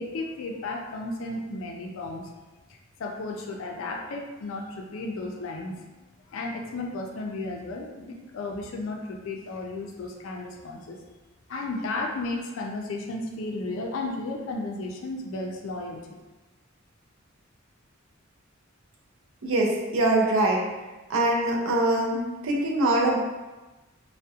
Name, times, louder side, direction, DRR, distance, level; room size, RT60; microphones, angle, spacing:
voice 1, 0.0-2.3 3.0-5.9 6.3-11.0 11.5-16.0, left 2 dB, 75° left, 2 dB, 0.4 m, -34 dB
voice 2, 19.4-20.6 21.1-23.2, right 1 dB, 75° right, -1 dB, 0.5 m, -23 dB
2.3 x 2.1 x 2.6 m, 1.1 s
head